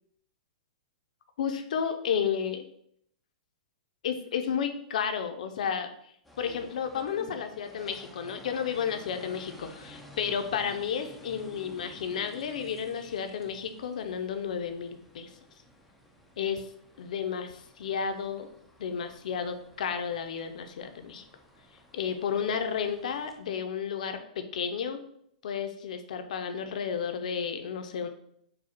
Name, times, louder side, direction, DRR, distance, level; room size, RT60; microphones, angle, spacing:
voice 1, 1.4-2.6 4.0-15.3 16.4-16.7 17.0-18.5 18.8-21.3 21.9-25.0 25.4-28.1, left 7 dB, 65° left, 7 dB, 0.6 m, -32 dB
sound 1, 6.2-23.4, left 1 dB, ahead, 0.4 m, -53 dB
4.8 x 2.2 x 4.4 m, 0.70 s
hypercardioid pair, 165°, 4 cm